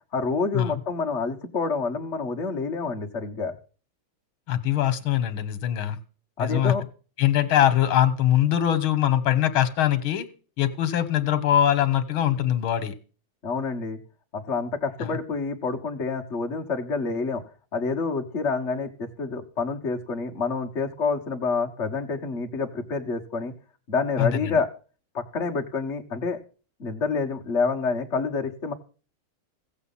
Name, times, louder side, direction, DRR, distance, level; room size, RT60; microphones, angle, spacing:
voice 1, 0.1-3.6 6.4-6.8 13.4-14.0 14.3-17.4 17.7-23.5 23.9-24.7 25.1-26.4 26.8-28.7, left 4 dB, 35° left, 2 dB, 1.6 m, -28 dB
voice 2, 4.5-6.0 6.4-6.7 7.2-10.3 10.6-12.9 15.0-15.2 24.2-24.6, left 11 dB, 85° left, 12 dB, 2.0 m, -22 dB
16.0 x 8.1 x 5.7 m, 0.39 s
omnidirectional pair, 2.2 m